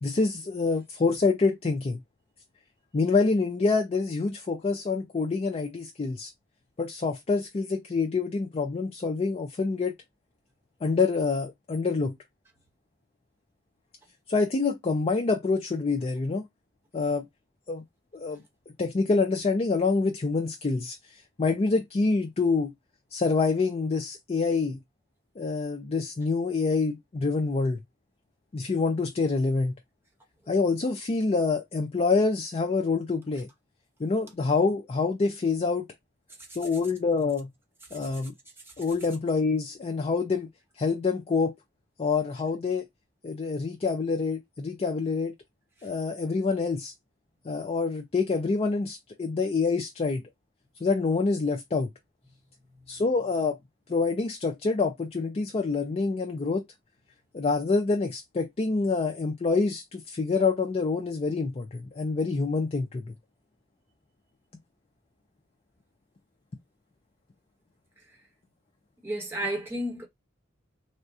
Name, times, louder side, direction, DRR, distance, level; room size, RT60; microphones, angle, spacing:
voice 1, 0.0-2.0 2.9-6.3 6.8-9.9 10.8-12.2 14.3-16.5 16.9-17.3 17.7-17.8 18.1-18.4 18.8-22.7 23.1-24.8 25.4-27.8 28.5-29.7 30.5-33.5 34.0-35.9 36.5-37.5 37.9-38.3 38.8-40.5 40.8-41.5 42.0-42.9 43.2-45.3 45.8-46.9 47.4-50.2 50.8-51.9 52.9-53.6 53.9-56.7 57.3-63.1, left 4 dB, 30° left, 0.4 m, -26 dB
voice 2, 69.0-70.1, right 1 dB, 10° right, 1.0 m, -31 dB
3.4 x 2.1 x 2.6 m
head